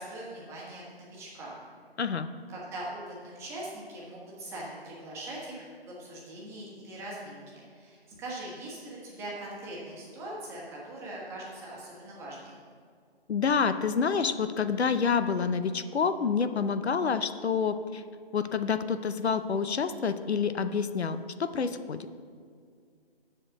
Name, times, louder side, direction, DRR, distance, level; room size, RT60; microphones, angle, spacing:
voice 1, 0.0-1.5 2.5-12.5, right 1 dB, 10° right, -6 dB, 1.3 m, -41 dB
voice 2, 13.3-18.0 18.3-22.1, left 6 dB, 85° left, 11 dB, 0.7 m, -28 dB
7.6 x 6.7 x 6.5 m, 2.1 s
figure-of-eight pair, 155°, 32 cm